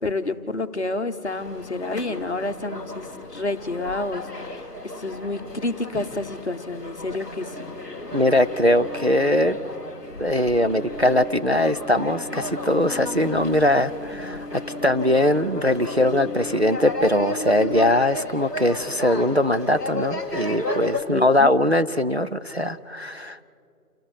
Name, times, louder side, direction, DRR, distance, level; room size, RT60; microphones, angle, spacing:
voice 1, 0.0-7.7 21.1-21.5, left 2 dB, 45° left, 7 dB, 1.1 m, -29 dB
sound 1, 1.2-21.0, left 1 dB, 10° left, 1.3 m, -34 dB
sound 2, 7.5-17.9, left 1 dB, 5° right, 4.1 m, -38 dB
voice 2, 8.1-9.6 10.2-23.4, left 1 dB, 45° right, 9 dB, 0.5 m, -21 dB
29.0 x 18.0 x 4.9 m, 2.4 s
figure-of-eight pair, 165°, 46 cm